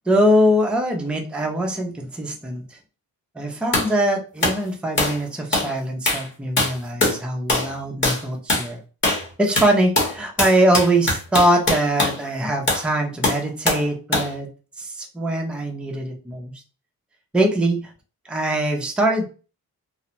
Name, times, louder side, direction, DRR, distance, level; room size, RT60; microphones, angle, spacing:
voice 1, 0.1-2.8 3.4-8.8 9.4-14.5 14.8-16.6 17.3-17.9 18.2-19.2, right 1 dB, 5° right, 1 dB, 0.4 m, -22 dB
sound 1, 3.7-3.9 4.4-4.6 5.0-5.2 5.5-5.7 6.1-6.3 6.6-7.2 7.5-7.7 8.0-8.2 8.5-8.7 9.0-9.3 9.6-12.2 12.7-12.9 13.2-13.9 14.1-14.3, left 2 dB, 30° left, 0.9 m, -22 dB
2.5 x 2.0 x 2.8 m, 0.35 s
wide cardioid pair, 160°, 36 cm